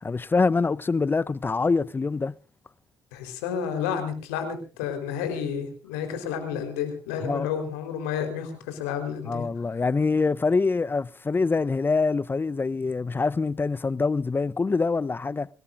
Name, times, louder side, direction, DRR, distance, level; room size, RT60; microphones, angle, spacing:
voice 1, 0.0-2.3 7.2-7.5 9.3-15.5, left 4 dB, 25° left, 0.7 m, -25 dB
voice 2, 3.1-9.5 9.7-9.8, left 7 dB, 85° left, 4.0 m, -31 dB
25.5 x 18.0 x 2.5 m
hypercardioid pair, 55°, 8 cm